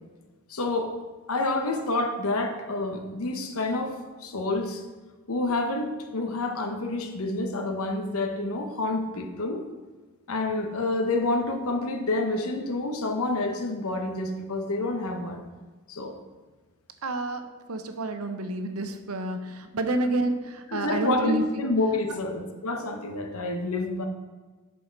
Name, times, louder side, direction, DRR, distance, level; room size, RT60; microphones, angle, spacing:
voice 1, 0.5-0.9 1.3-4.8 5.3-9.6 10.3-15.4 15.9-16.2 19.9-20.0 20.7-24.1, left 2 dB, 75° left, 5 dB, 0.9 m, -28 dB
voice 2, 17.0-21.6 22.1-22.2, right 2 dB, 85° right, 7 dB, 0.7 m, -29 dB
7.2 x 4.8 x 5.1 m, 1.3 s
head